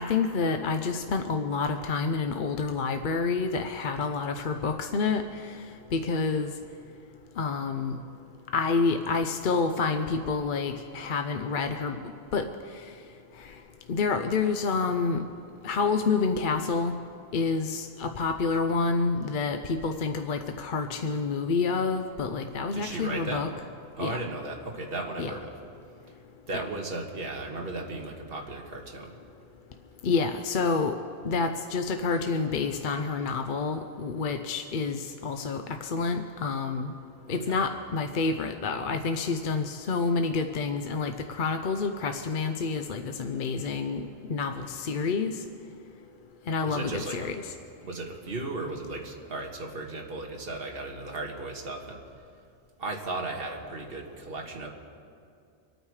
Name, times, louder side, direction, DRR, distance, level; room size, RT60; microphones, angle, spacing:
voice 1, 0.0-5.5 5.9-6.5 7.4-8.0 8.5-12.0 12.3-12.5 13.4-13.5 13.9-15.2 15.6-16.9 17.3-23.5 24.0-24.2 25.2-25.3 30.0-30.9 31.2-36.9 37.3-45.4 46.5-47.5, left 4 dB, 50° left, 6 dB, 0.7 m, -28 dB
voice 2, 22.7-23.5 24.0-25.5 26.5-29.1 37.3-37.6 46.6-47.3 47.8-52.0 52.8-54.7, right 2 dB, 55° right, 1 dB, 1.8 m, -36 dB
25.5 x 9.1 x 4.8 m, 2.4 s
omnidirectional pair, 1.2 m